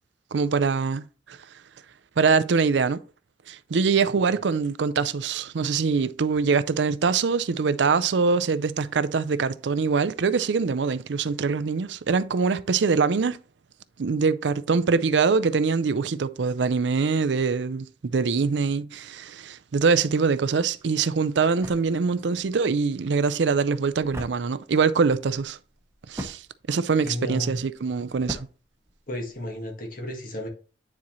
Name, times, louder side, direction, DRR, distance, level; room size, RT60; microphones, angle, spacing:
voice 1, 0.3-1.4 2.2-3.0 3.5-13.4 14.0-25.6 26.1-26.4 26.7-28.5, right 5 dB, 75° right, 0.5 m, -23 dB
sound 1, 20.8-29.6, equal, 15° right, 1.1 m, -43 dB
voice 2, 27.0-27.5 29.1-30.5, left 1 dB, 50° left, 1.8 m, -33 dB
9.6 x 4.3 x 3.1 m
head